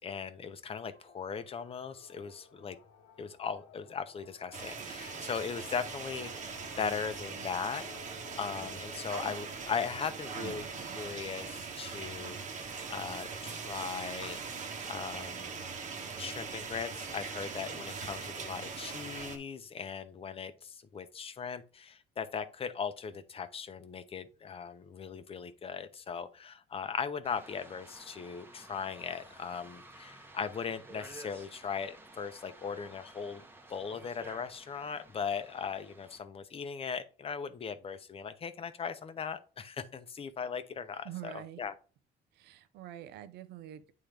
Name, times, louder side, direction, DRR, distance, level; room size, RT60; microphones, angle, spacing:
voice 1, 0.0-2.8 3.2-7.9 8.4-14.6 14.9-15.6 16.2-33.4 33.7-41.7, left 6 dB, 35° left, 0.8 m, -39 dB
sound 1, 0.9-12.7, left 6 dB, 85° left, 1.2 m, -57 dB
sound 2, 4.5-19.4, right 5 dB, 50° right, 1.2 m, -41 dB
sound 3, 27.2-36.2, right 2 dB, 15° right, 1.0 m, -53 dB
voice 2, 41.0-41.6 42.3-43.9, right 12 dB, 80° right, 0.7 m, -45 dB
8.8 x 3.7 x 3.4 m
cardioid pair, 110°, 17 cm